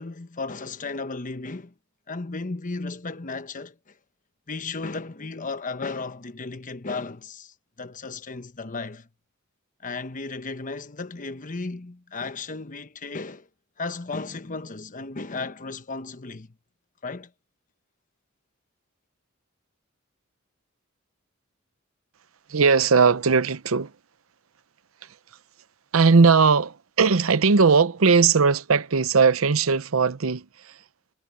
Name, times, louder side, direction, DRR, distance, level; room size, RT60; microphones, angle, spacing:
voice 1, 0.0-1.7 2.1-3.9 4.5-9.1 9.8-13.5 13.8-16.5 17.0-17.3, left 3 dB, 40° left, 1.1 m, -34 dB
voice 2, 22.5-23.9 25.9-30.8, right 5 dB, 80° right, 0.7 m, -19 dB
head